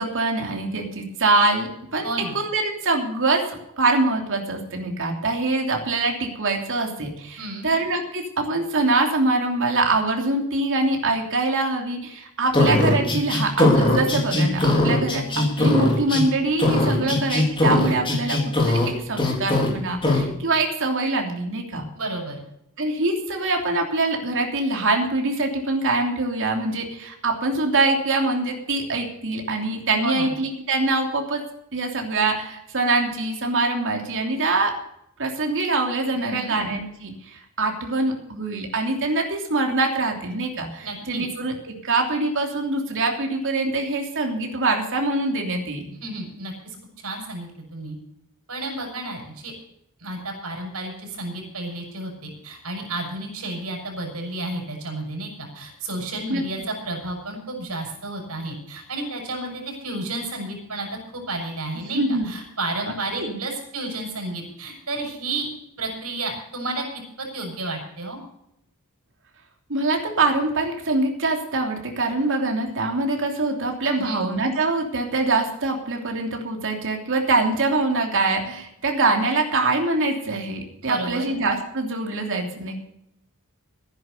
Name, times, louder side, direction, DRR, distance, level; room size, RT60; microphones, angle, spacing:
voice 1, 0.0-2.1 2.3-21.9 22.8-31.4 31.7-34.7 35.2-45.8 56.3-56.4 61.9-62.3 62.9-63.4 69.7-82.8, right 2 dB, 60° right, 2 dB, 3.2 m, -24 dB
voice 2, 2.0-2.4 7.4-7.7 16.9-17.2 21.9-22.4 30.0-30.3 36.2-36.5 40.8-41.2 46.0-47.9 48.5-49.5 50.0-65.5 65.8-66.8 67.2-68.2 73.9-74.2 80.8-81.3, right 2 dB, 80° right, 1 dB, 6.4 m, -31 dB
sound 1, 12.5-16.2 16.6-18.9 19.2-19.7 20.0-20.2, left 2 dB, 25° left, 4.1 m, -20 dB
14.5 x 10.5 x 6.7 m, 0.78 s
head